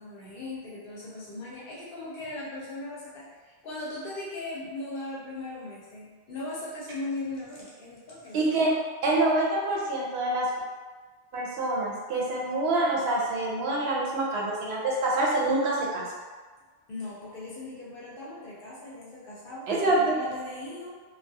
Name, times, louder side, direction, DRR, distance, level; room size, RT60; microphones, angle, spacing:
voice 1, 0.0-8.4 16.9-21.0, left 2 dB, 65° left, -6 dB, 0.7 m, -38 dB
voice 2, 8.3-8.7 9.0-10.5 11.3-16.1 19.7-20.1, right 2 dB, 85° right, -4 dB, 0.9 m, -26 dB
2.3 x 2.2 x 2.6 m, 1.4 s
omnidirectional pair, 1.0 m